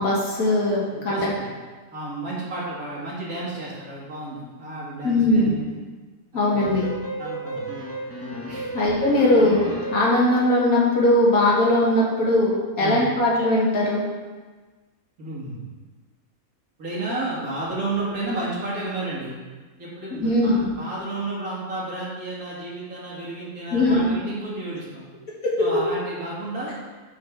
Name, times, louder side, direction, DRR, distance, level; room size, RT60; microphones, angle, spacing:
voice 1, 0.0-1.3 5.0-5.5 6.3-6.9 8.7-9.6 9.9-14.0 20.1-20.7 23.7-24.1 25.4-25.5, left 1 dB, 85° left, -5 dB, 2.1 m, -20 dB
voice 2, 0.9-1.5 1.9-5.8 6.3-6.7 7.2-7.7 8.5-8.7 12.8-13.0 15.2-15.6 16.8-19.4 19.8-25.1 25.6-26.8, right 2 dB, 90° right, -7 dB, 2.7 m, -32 dB
sound 1, 6.6-10.2, right 1 dB, 10° left, 0.9 m, -33 dB
10.0 x 3.9 x 4.7 m, 1.4 s
omnidirectional pair, 1.5 m